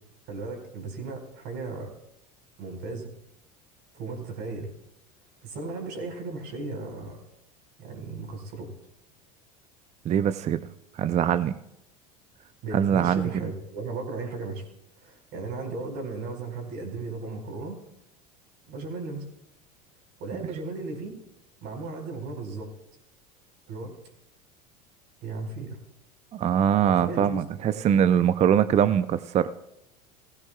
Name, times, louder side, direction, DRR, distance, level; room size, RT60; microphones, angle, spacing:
voice 1, 0.3-1.9 2.6-3.1 3.9-4.7 5.4-7.2 7.8-8.7 12.6-14.7 15.0-17.8 18.7-19.2 20.2-21.1 21.6-22.7 23.7-24.0 25.2-25.8 26.9-28.0, right 3 dB, 60° right, 3 dB, 4.7 m, -36 dB
voice 2, 10.0-10.6 11.0-11.6 12.7-13.3 26.3-29.5, right 9 dB, 35° right, 13 dB, 0.6 m, -22 dB
18.5 x 15.5 x 2.3 m, 0.81 s
hypercardioid pair, 90°, 21 cm